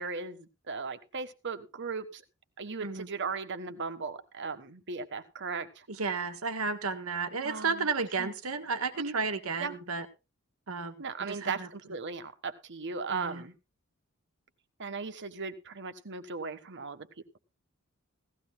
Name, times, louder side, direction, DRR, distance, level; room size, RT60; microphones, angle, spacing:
voice 1, 0.0-2.2 2.6-5.9 7.4-7.9 8.2-8.3 8.9-9.2 9.6-9.8 11.0-13.5 14.8-17.1, right 4 dB, 55° right, 9 dB, 1.4 m, -37 dB
voice 2, 5.9-10.0 10.7-11.0 11.3-11.7 13.1-13.4, right 4 dB, 90° right, 8 dB, 1.6 m, -33 dB
17.5 x 15.0 x 2.3 m, 0.28 s
head